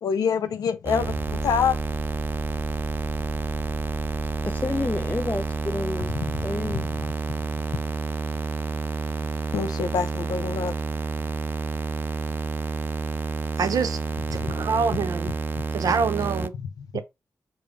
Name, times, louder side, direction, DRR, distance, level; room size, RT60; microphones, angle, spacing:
voice 1, 0.0-1.8 6.3-6.9 7.7-7.8 9.5-10.7 14.5-14.7 16.6-16.9, left 7 dB, 90° left, 0.4 m, -26 dB
sound 1, 0.8-16.5, right 4 dB, 35° right, 0.4 m, -29 dB
sound 2, 1.0-9.4 10.9-11.0, left 2 dB, 40° left, 0.8 m, -38 dB
voice 2, 4.4-6.1 6.4-6.9, left 2 dB, 25° left, 0.4 m, -29 dB
voice 3, 13.6-14.0 14.3-15.3 15.7-16.5 16.9-17.0, right 5 dB, 80° right, 0.6 m, -25 dB
5.1 x 2.0 x 4.6 m
cardioid pair, 50°, 6 cm